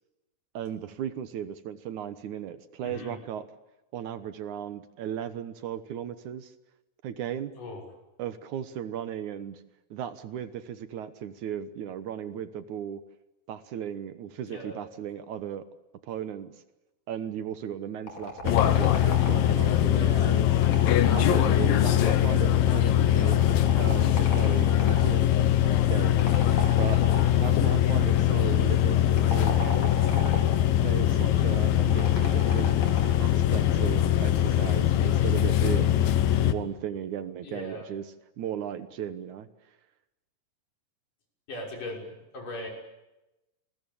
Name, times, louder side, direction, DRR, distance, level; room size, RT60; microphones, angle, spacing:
voice 1, 0.5-3.5 3.9-6.5 7.0-7.5 8.2-9.6 9.9-13.0 13.5-15.7 16.0-16.5 17.1-20.5 21.1-26.2 26.8-27.0 27.4-29.9 30.8-32.8 33.2-36.0 36.4-38.1 38.4-39.5, right 9 dB, 65° right, 12 dB, 2.4 m, -36 dB
voice 2, 2.8-3.2 7.6-7.8 14.5-14.8 19.9-20.4 26.3-26.7 37.4-37.9 41.5-42.1 42.3-42.7, left 1 dB, 65° left, 1 dB, 7.7 m, -39 dB
sound 1, 18.1-19.7 20.5-22.4 23.3-25.2 26.2-27.5 29.1-30.6 31.9-33.2, left 2 dB, 50° left, 5.6 m, -37 dB
sound 2, 18.4-36.5, left 11 dB, 85° left, 3.1 m, -22 dB
29.0 x 21.0 x 8.7 m, 0.98 s
omnidirectional pair, 4.0 m